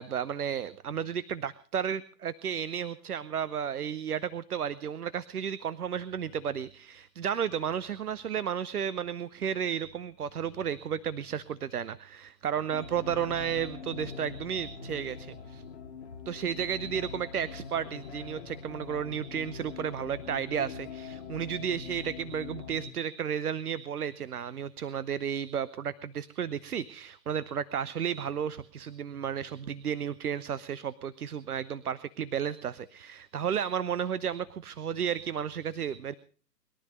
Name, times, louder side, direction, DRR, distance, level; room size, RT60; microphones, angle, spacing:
voice 1, 0.0-15.6 16.3-36.1, right 8 dB, 65° right, 17 dB, 0.8 m, -33 dB
sound 1, 12.7-22.9, left 6 dB, 40° left, 1.6 m, -43 dB
21.5 x 12.5 x 5.2 m, 0.40 s
figure-of-eight pair, 130°, 49 cm